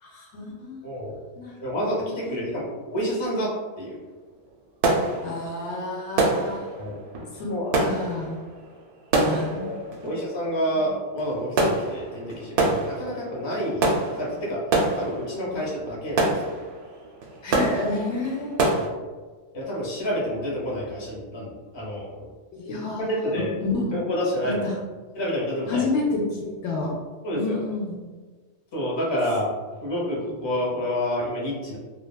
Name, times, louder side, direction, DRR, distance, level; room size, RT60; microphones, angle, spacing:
voice 1, 0.0-0.8 1.4-1.6 2.0-2.4 2.6-2.7 5.2-6.6 7.4-7.5 7.8-8.4 9.2-9.7 15.5-15.6 17.4-18.6 22.5-24.0 24.4-24.8 25.7-26.9 27.3-28.0, left 3 dB, 70° left, -2 dB, 0.8 m, -29 dB
voice 2, 0.8-1.2 1.6-3.5 3.8-4.0 6.8-7.0 7.5-7.7 9.1-9.8 10.0-13.9 14.2-14.6 15.0-16.3 18.7-18.9 19.5-22.3 23.1-23.6 23.9-24.6 25.1-25.9 27.2-27.6 28.7-29.6 29.8-31.8, equal, 25° left, -5 dB, 0.6 m, -28 dB
sound 1, 3.8-4.0 4.3-18.9, right 2 dB, 65° right, 0.8 m, -27 dB
3.1 x 2.3 x 2.2 m, 1.4 s
omnidirectional pair, 1.3 m